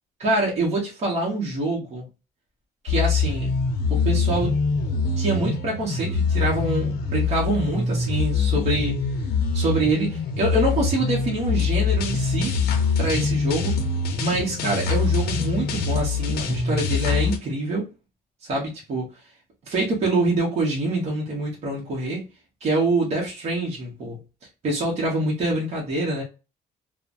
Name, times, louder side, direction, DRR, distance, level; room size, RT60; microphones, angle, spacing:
voice 1, 0.2-2.1 2.8-3.5 3.9-4.6 5.2-8.9 9.5-12.6 13.0-13.8 14.2-17.9 18.5-19.1 19.7-22.3 22.6-24.2 24.6-26.2, right 2 dB, 40° right, -3 dB, 1.1 m, -25 dB
sound 1, 2.9-17.4, left 4 dB, 75° left, 0.6 m, -24 dB
3.1 x 2.1 x 2.5 m, 0.29 s
cardioid pair, 145°, 16 cm